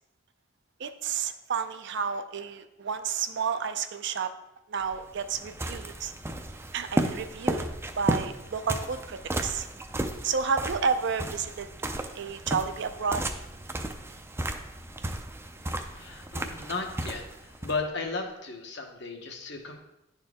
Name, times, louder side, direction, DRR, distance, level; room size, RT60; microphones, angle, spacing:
voice 1, 0.8-4.3 4.7-6.1 6.7-7.7 8.0-9.7 10.2-11.7 12.1-13.2, right 6 dB, 60° right, 9 dB, 0.5 m, -31 dB
sound 1, 4.8-17.8, right 1 dB, 15° right, 0.5 m, -34 dB
voice 2, 15.9-19.8, left 3 dB, 60° left, 3 dB, 1.1 m, -35 dB
10.5 x 4.4 x 3.6 m, 0.89 s
head